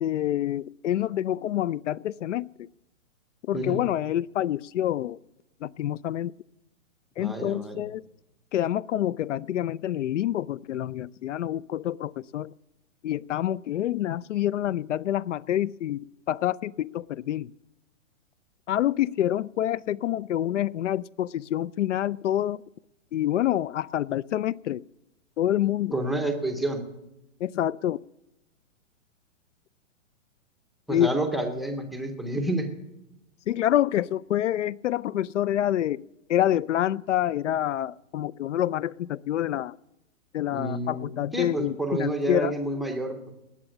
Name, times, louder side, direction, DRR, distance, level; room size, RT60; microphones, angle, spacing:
voice 1, 0.0-2.4 3.5-5.2 5.6-6.3 7.2-8.0 8.5-12.5 13.0-17.5 18.7-22.6 23.1-24.8 25.4-26.0 27.4-28.0 30.9-31.1 33.5-36.0 36.3-39.8 40.3-42.5, left 12 dB, 65° left, 0.5 m, -27 dB
voice 2, 3.5-3.8 7.2-7.8 25.9-26.8 30.9-32.7 40.5-43.2, right 1 dB, ahead, 0.6 m, -29 dB
19.0 x 7.2 x 9.8 m
hypercardioid pair, 160°, 39 cm